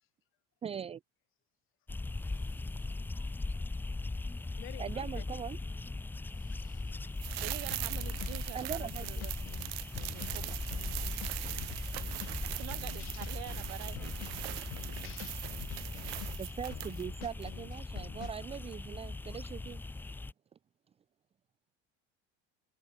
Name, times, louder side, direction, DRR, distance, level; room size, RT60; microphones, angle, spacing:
voice 1, 0.6-1.0 4.8-5.6 8.5-9.1 16.3-19.8, right 8 dB, 20° right, 0.9 m, -40 dB
sound 1, 1.9-20.3, left 2 dB, 5° left, 1.0 m, -39 dB
voice 2, 4.6-5.3 6.4-7.1 10.1-12.3 13.0-13.3 14.9-15.9, left 15 dB, 45° left, 5.3 m, -55 dB
sound 2, 7.2-17.1 17.4-17.5, right 30 dB, 85° right, 2.1 m, -42 dB
voice 3, 7.3-9.3 9.9-10.6 12.4-14.3, right 22 dB, 55° right, 2.1 m, -47 dB
sound 3, 7.7-8.4 8.7-12.4 12.7-16.4 16.7-18.3, left 31 dB, 85° left, 1.2 m, -48 dB
cardioid pair, 170°, 30 cm